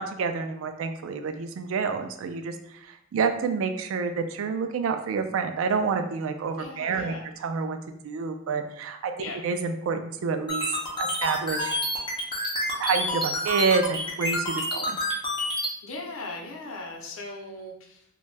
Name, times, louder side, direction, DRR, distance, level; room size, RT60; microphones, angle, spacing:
voice 1, 0.0-2.5 2.8-7.1 7.4-7.8 8.0-9.1 9.4-10.6 11.0-11.8 12.8-14.9, right 5 dB, 85° right, 7 dB, 0.3 m, -28 dB
voice 2, 6.6-7.2 9.2-9.4 15.8-18.0, left 2 dB, 85° left, 1 dB, 0.6 m, -38 dB
sound 1, 10.5-15.7, left 1 dB, 25° left, 0.7 m, -28 dB
2.5 x 2.2 x 3.1 m, 0.76 s
head